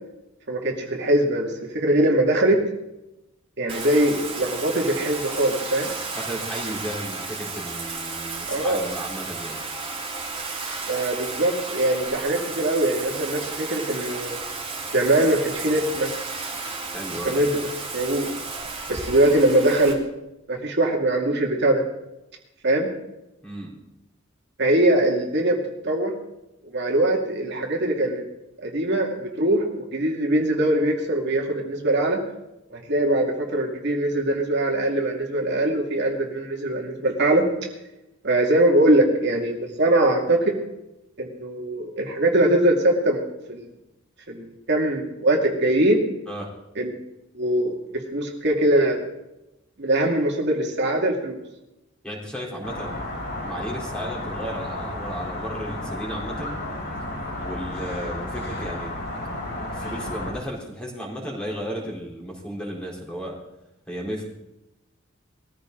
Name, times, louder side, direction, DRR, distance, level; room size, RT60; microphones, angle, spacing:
voice 1, 0.5-2.6 3.6-5.9 8.5-8.8 10.9-14.4 14.9-16.1 17.2-17.7 17.9-18.3 18.9-20.0 20.5-21.8 22.6-22.9 24.6-25.6 25.8-26.1 26.7-28.2 28.6-32.2 32.7-37.5 38.2-40.5 41.2-43.2 43.5-43.7 44.3-46.0 46.8-47.0 47.3-47.8 48.1-49.0 49.8-51.4, right 1 dB, 55° right, 0 dB, 2.4 m, -22 dB
Bathtub (filling or washing), 3.7-19.9, right 4 dB, 25° right, 3.5 m, -33 dB
voice 2, 6.1-9.6 16.9-17.3 23.4-23.7 46.3-46.5 52.0-53.0 53.4-56.6 57.4-59.1 59.5-63.3 63.9-64.3, equal, 5° left, -3 dB, 4.0 m, -34 dB
sound 1, 52.6-60.3, left 1 dB, 60° left, 5.0 m, -32 dB
21.0 x 15.0 x 3.9 m, 0.92 s
head